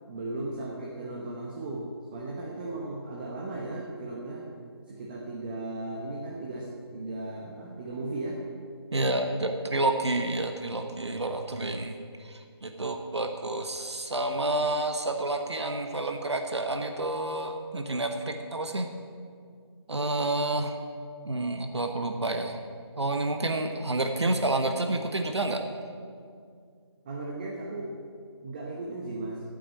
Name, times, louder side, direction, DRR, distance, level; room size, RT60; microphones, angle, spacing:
voice 1, 0.1-4.5 4.9-8.4 27.0-27.9 28.4-29.4, right 2 dB, 20° right, -2 dB, 1.0 m, -36 dB
voice 2, 8.9-18.9 19.9-20.7 21.2-22.6 23.0-25.6, right 2 dB, 75° right, 5 dB, 1.1 m, -29 dB
9.1 x 8.7 x 9.1 m, 2.2 s
figure-of-eight pair, 160°, 14 cm